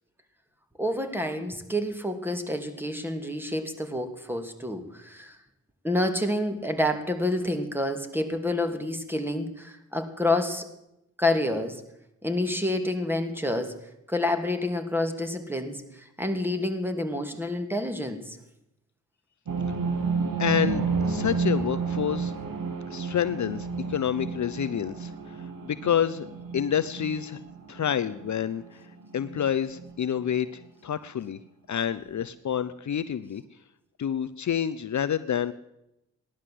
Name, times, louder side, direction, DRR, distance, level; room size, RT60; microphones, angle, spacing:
voice 1, 0.8-5.4 5.8-10.7 11.2-11.8 12.2-13.8 14.1-18.4, left 1 dB, 5° right, 6 dB, 2.7 m, -28 dB
sound 1, 19.5-29.9 30.2-30.3 30.6-30.7, right 4 dB, 75° right, 2.3 m, -31 dB
voice 2, 20.4-22.3 22.9-26.3 26.5-27.4 27.7-28.8 29.1-31.4 31.7-33.4 34.0-35.5, left 9 dB, 55° left, 13 dB, 0.8 m, -28 dB
16.0 x 11.5 x 7.7 m, 0.86 s
supercardioid pair, 50°, 35 cm